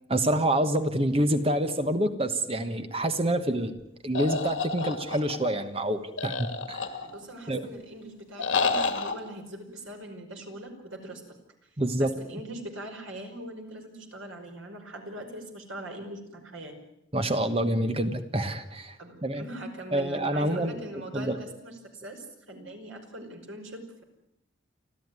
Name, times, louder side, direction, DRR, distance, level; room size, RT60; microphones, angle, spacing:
voice 1, 0.1-3.8 4.0-6.9 7.5-7.7 11.8-12.1 17.1-19.0 19.2-19.4 19.9-20.8 21.1-21.4, right 1 dB, 30° right, 8 dB, 1.2 m, -27 dB
sound 1, 4.1-5.5 6.2-7.3 8.4-9.1, left 4 dB, 75° left, 2.5 m, -29 dB
voice 2, 7.0-11.2 12.0-16.8 19.0-24.0, right 1 dB, 80° right, 3 dB, 5.4 m, -41 dB
30.0 x 12.5 x 9.6 m, 0.85 s
head